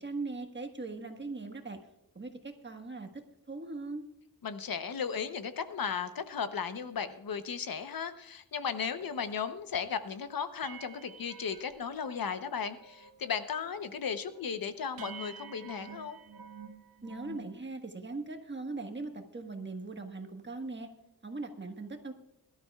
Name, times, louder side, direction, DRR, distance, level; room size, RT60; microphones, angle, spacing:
voice 1, 0.0-1.8 2.1-3.2 3.5-4.0 17.0-20.9 21.2-22.1, right 3 dB, 30° right, 4 dB, 1.5 m, -40 dB
voice 2, 4.4-16.2, left 6 dB, 75° left, 10 dB, 0.9 m, -36 dB
sound 1, 9.1-9.2 9.6-9.8 10.1-10.2 10.6-12.4 12.7-13.2 13.4-13.9 14.3-14.4 15.0-17.5, right 6 dB, 80° right, 1.1 m, -49 dB
21.5 x 12.5 x 2.4 m, 0.85 s
wide cardioid pair, 110°, 35 cm